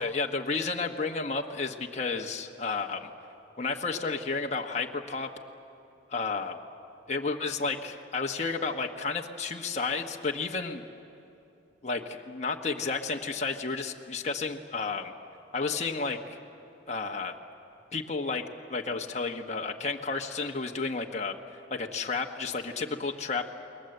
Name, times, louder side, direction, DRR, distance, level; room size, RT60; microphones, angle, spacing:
voice 1, 0.0-3.1 3.6-5.3 6.1-6.6 7.1-10.8 11.8-15.1 15.5-16.4 16.9-17.3 17.9-18.4 18.7-21.4 21.7-23.5, left 4 dB, 40° left, 2 dB, 1.2 m, -32 dB
28.5 x 22.0 x 7.8 m, 2.7 s
head